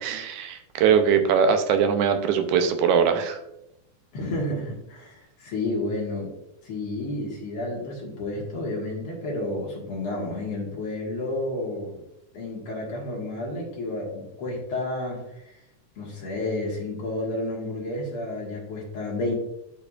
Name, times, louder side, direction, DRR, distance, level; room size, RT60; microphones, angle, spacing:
voice 1, 0.0-3.4, right 7 dB, 80° right, 7 dB, 2.0 m, -21 dB
voice 2, 4.1-6.3 6.6-12.0 12.3-15.6 16.0-19.3, left 2 dB, 55° left, -2 dB, 2.0 m, -31 dB
11.5 x 4.6 x 2.4 m, 0.86 s
omnidirectional pair, 3.5 m